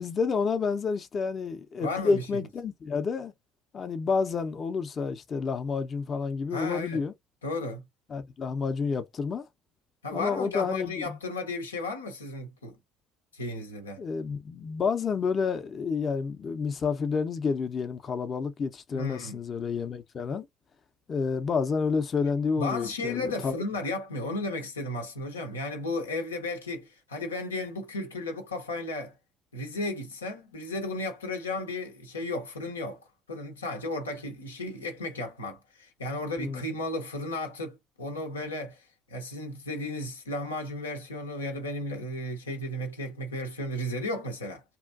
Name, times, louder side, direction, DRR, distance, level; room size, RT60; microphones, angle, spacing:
voice 1, 0.0-3.3 3.7-7.1 8.1-9.5 10.1-11.2 14.0-20.5 21.1-23.6 36.4-36.6, left 5 dB, 40° left, 0.6 m, -29 dB
voice 2, 1.8-2.4 6.5-7.0 7.4-7.8 10.0-12.8 13.3-14.0 18.9-19.4 22.6-29.2 29.5-38.8 39.1-44.6, left 2 dB, 90° left, 0.7 m, -34 dB
2.8 x 2.5 x 2.4 m
hypercardioid pair, 60°, 0 cm